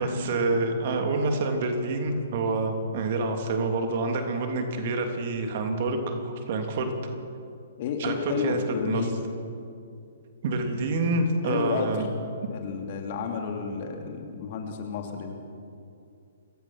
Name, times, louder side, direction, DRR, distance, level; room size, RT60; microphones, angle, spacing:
voice 1, 0.0-6.9 8.0-9.1 10.4-12.1 12.4-12.5, right 2 dB, 45° right, 4 dB, 3.0 m, -27 dB
voice 2, 7.8-9.1 11.4-11.9 12.5-15.4, left 6 dB, 40° left, 3 dB, 2.8 m, -31 dB
28.0 x 16.0 x 6.0 m, 2.5 s
figure-of-eight pair, 120°, 0 cm